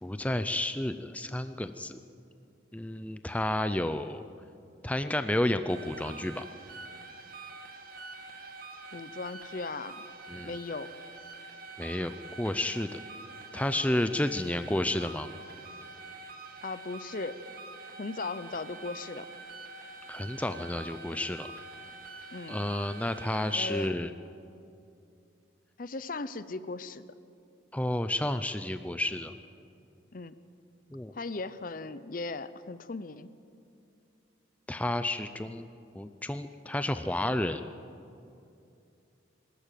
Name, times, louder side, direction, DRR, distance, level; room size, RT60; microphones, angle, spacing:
voice 1, 0.0-2.0 2.7-4.2 4.8-6.5 10.3-10.5 11.8-13.0 13.5-15.3 20.1-21.5 22.5-24.1 27.7-29.3 30.9-31.1 34.7-35.7 35.9-37.6, left 1 dB, 5° left, 10 dB, 0.5 m, -31 dB
sound 1, 5.7-23.9, right 3 dB, 50° right, 1.9 m, -46 dB
voice 2, 8.9-10.0 10.4-10.9 16.6-17.4 18.0-19.3 22.3-22.6 23.5-23.9 25.8-27.0 30.1-30.4 31.1-33.3, left 3 dB, 45° left, 14 dB, 0.7 m, -37 dB
23.5 x 13.5 x 9.1 m, 2.6 s
head